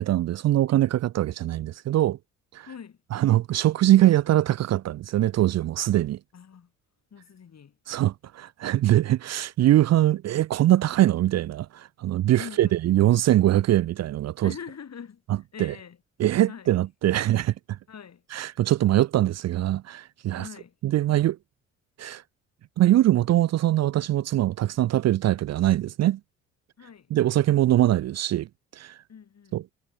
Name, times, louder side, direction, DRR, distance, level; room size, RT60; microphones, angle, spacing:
voice 1, 0.0-2.2 2.5-2.7 3.1-6.2 7.9-14.5 15.6-15.7 16.2-17.8 18.3-20.4 20.8-21.4 22.0-22.2 22.8-26.2 27.1-28.5 28.7-29.0 29.5-29.6, right 14 dB, 45° right, 0.6 m, -22 dB
voice 2, 2.7-3.0 6.3-6.7 7.1-7.8 12.4-12.8 14.4-16.0 16.5-16.7 17.9-18.3 20.4-20.8 26.8-27.1 29.1-29.6, left 7 dB, 45° left, 5.7 m, -43 dB
hypercardioid pair, 45°, 37 cm